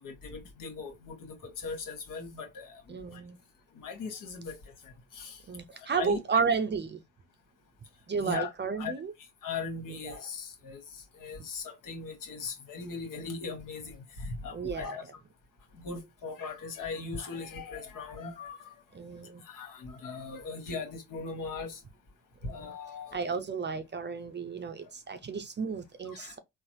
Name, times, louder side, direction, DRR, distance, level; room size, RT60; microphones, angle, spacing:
voice 1, 0.0-2.8 3.1-3.2 3.7-4.6 4.8-5.4 5.9-6.2 8.2-8.5 8.8-8.9 9.4-15.0 15.8-18.7 19.4-21.8 22.4-23.2 26.0-26.3, left 4 dB, 60° left, 1.3 m, -39 dB
voice 2, 2.9-3.4 5.5-7.0 8.1-9.1 9.9-10.2 14.5-15.0 18.9-19.4 22.4-22.7 23.1-26.4, right 5 dB, 30° right, 0.5 m, -32 dB
3.7 x 2.0 x 3.0 m
hypercardioid pair, 55°, 36 cm